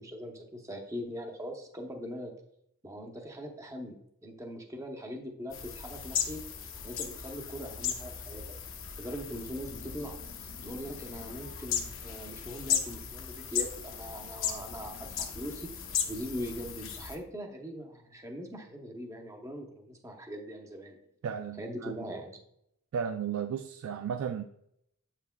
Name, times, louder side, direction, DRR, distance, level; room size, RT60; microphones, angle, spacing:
voice 1, 0.0-2.3 2.8-4.0 4.2-6.4 6.8-8.5 9.0-10.1 10.4-15.7 16.1-21.0 21.6-22.4, equal, 15° right, 0.7 m, -41 dB
sound 1, 5.5-17.2, left 8 dB, 60° left, 0.8 m, -36 dB
voice 2, 21.2-22.0 22.9-24.4, right 7 dB, 70° right, 0.3 m, -34 dB
7.8 x 5.8 x 2.2 m
head